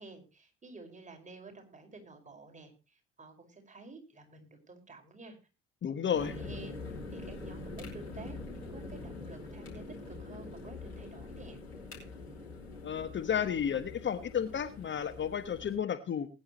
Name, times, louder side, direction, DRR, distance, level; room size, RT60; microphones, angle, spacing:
voice 1, 0.0-5.4 6.0-6.8 7.1-11.6, right 3 dB, 25° right, 4 dB, 5.5 m, -51 dB
voice 2, 5.8-6.3 12.8-16.3, left 8 dB, 35° left, 10 dB, 1.2 m, -32 dB
sound 1, 6.1-15.8, left 3 dB, 85° left, 5.1 m, -44 dB
20.0 x 10.0 x 3.2 m, 0.31 s
figure-of-eight pair, 55°, 31 cm